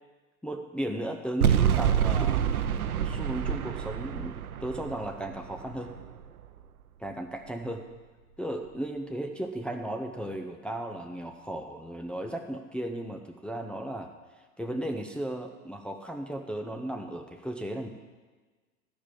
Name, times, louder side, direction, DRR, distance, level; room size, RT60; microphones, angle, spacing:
voice 1, 0.4-2.4 3.0-5.9 7.0-7.8 8.4-14.1 14.6-17.9, right 1 dB, ahead, 3 dB, 0.6 m, -35 dB
sound 1, 1.4-6.6, right 8 dB, 80° right, 0.6 m, -27 dB
14.0 x 5.2 x 7.6 m, 1.3 s
figure-of-eight pair, 85°, 43 cm